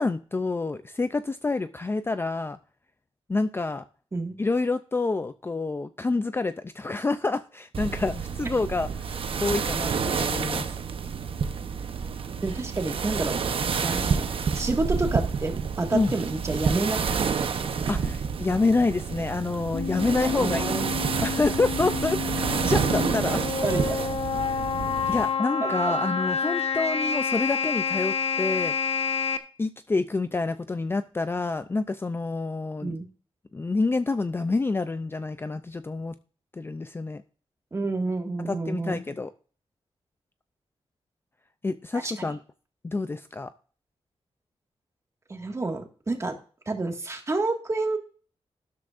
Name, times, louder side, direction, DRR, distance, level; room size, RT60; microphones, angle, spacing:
voice 1, 0.0-2.6 3.3-3.8 4.4-9.1 9.4-10.7 15.9-16.1 17.9-20.7 21.2-23.4 24.5-24.7 25.1-28.7 29.6-33.0 33.5-36.2 36.5-37.2 38.4-39.3 41.6-42.4 42.8-43.5, left 3 dB, 20° left, 10 dB, 0.4 m, -27 dB
sound 1, 7.7-25.3, right 6 dB, 55° right, 0.9 m, -29 dB
voice 2, 12.4-13.4 13.8-17.0 17.4-17.7 20.2-20.9 23.6-24.0 25.6-25.9 32.8-33.1 37.7-39.0 42.0-42.3 45.3-46.4 46.7-48.0, right 2 dB, 25° right, 3 dB, 1.9 m, -29 dB
sound 2, 19.7-29.4, left 5 dB, 70° left, 1.0 m, -28 dB
12.5 x 11.0 x 2.5 m, 0.41 s
wide cardioid pair, 155°, 11 cm